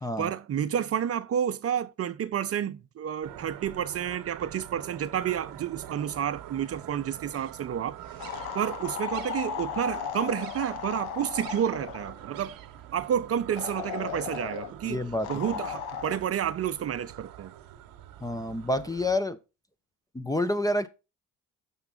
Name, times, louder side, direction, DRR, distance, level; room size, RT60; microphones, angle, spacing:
voice 1, 0.2-8.0 8.5-12.5 12.9-15.0 15.3-17.5, right 9 dB, 40° right, 0.5 m, -30 dB
sound 1, 3.2-19.2, right 12 dB, 65° right, 0.9 m, -45 dB
sound 2, 8.2-12.2 13.6-14.7 15.2-16.2, left 8 dB, 80° left, 0.8 m, -36 dB
voice 2, 14.8-15.3 18.2-19.4 20.1-20.9, left 1 dB, 10° left, 0.5 m, -28 dB
6.9 x 5.5 x 3.8 m
hypercardioid pair, 60°, 38 cm